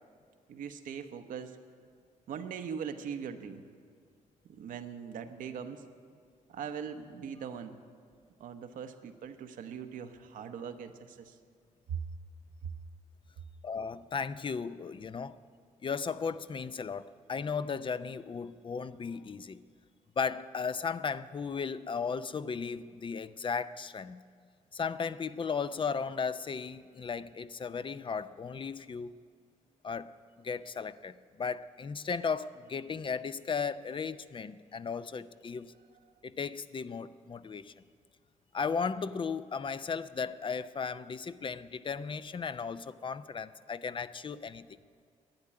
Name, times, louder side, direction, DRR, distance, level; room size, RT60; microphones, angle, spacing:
voice 1, 0.5-1.6 2.3-3.6 4.5-5.8 6.5-7.8 8.4-11.4 11.9-12.0 12.6-12.7, right 7 dB, 85° right, 0.9 m, -40 dB
voice 2, 13.6-15.4 15.8-19.6 20.2-24.2 24.7-29.1 29.8-30.1 30.4-35.7 36.2-37.7 38.5-44.7, left 5 dB, 40° left, 0.5 m, -36 dB
12.0 x 9.6 x 9.6 m
cardioid pair, 75°, 14 cm